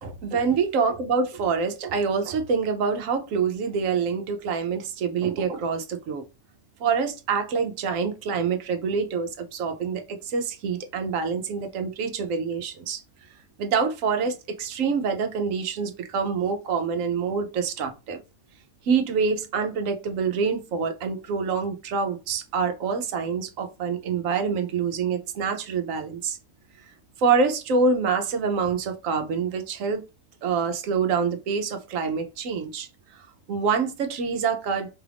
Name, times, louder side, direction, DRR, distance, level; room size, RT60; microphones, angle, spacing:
voice 1, 0.0-6.2 6.8-13.0 13.6-18.2 18.8-26.4 27.2-30.0 30.4-34.9, right 5 dB, 65° right, 0.9 m, -26 dB
4.8 x 2.4 x 3.3 m
omnidirectional pair, 1.7 m